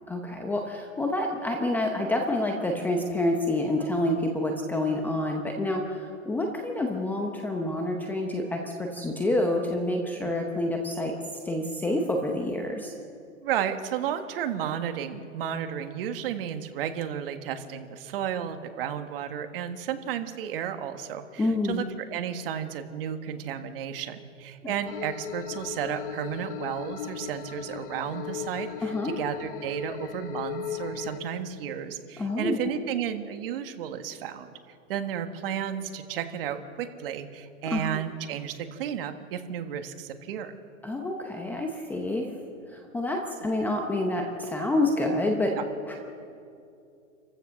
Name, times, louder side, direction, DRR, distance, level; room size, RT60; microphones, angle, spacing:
voice 1, 0.1-11.1 11.4-12.9 21.4-21.8 24.6-24.7 28.8-29.1 32.2-32.6 37.7-37.8 40.8-42.3 42.7-45.5 45.9-46.0, left 1 dB, 5° left, 2 dB, 0.7 m, -28 dB
voice 2, 13.4-21.8 22.1-34.5 34.9-40.5 45.5-45.6, right 9 dB, 45° right, 7 dB, 1.7 m, -33 dB
sound 1, 24.9-31.2, left 9 dB, 40° left, 1.2 m, -37 dB
27.5 x 15.0 x 6.4 m, 2.6 s
hypercardioid pair, 155°, 40 cm